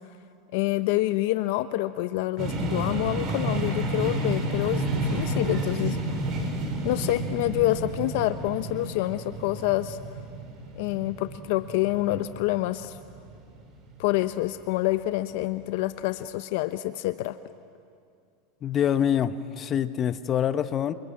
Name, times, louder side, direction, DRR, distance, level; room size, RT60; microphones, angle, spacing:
voice 1, 0.5-6.0 6.8-10.0 10.8-12.9 14.0-17.4, left 16 dB, 65° left, 11 dB, 0.8 m, -27 dB
sound 1, 2.4-14.2, right 1 dB, 45° right, 5.5 m, -31 dB
voice 2, 18.6-20.9, left 9 dB, 35° left, 12 dB, 1.1 m, -25 dB
28.5 x 22.5 x 8.7 m, 2.3 s
supercardioid pair, 110°, 0 cm